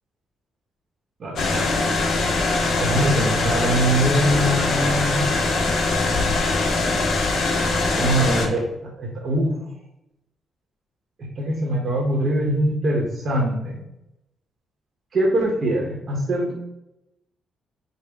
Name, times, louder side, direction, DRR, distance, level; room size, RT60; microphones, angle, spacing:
voice 1, 1.2-1.7 2.8-5.2 7.9-9.6 11.2-13.8 15.1-16.5, right 1 dB, 45° right, 0 dB, 0.8 m, -23 dB
sound 1, 1.4-8.5, left 3 dB, 60° left, 0.7 m, -22 dB
5.4 x 2.1 x 3.4 m, 0.85 s
cardioid pair, 120°, 0 cm